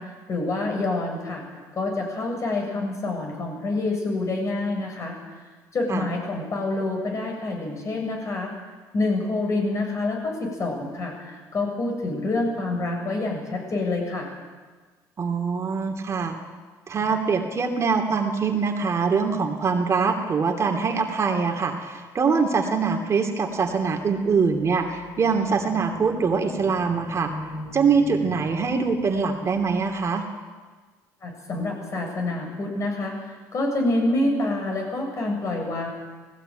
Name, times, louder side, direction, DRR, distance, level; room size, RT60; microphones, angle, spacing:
voice 1, 0.0-1.4 1.7-5.2 5.7-8.5 8.9-14.3 31.2-33.2 33.5-35.9, left 2 dB, 40° left, 1 dB, 7.6 m, -27 dB
voice 2, 15.2-16.3 16.9-27.3 27.7-30.2, right 5 dB, 40° right, 3 dB, 2.8 m, -23 dB
sound 1, 24.1-30.1, left 2 dB, 80° left, 5.4 m, -41 dB
19.0 x 17.0 x 9.2 m, 1.4 s
supercardioid pair, 90°, 8 cm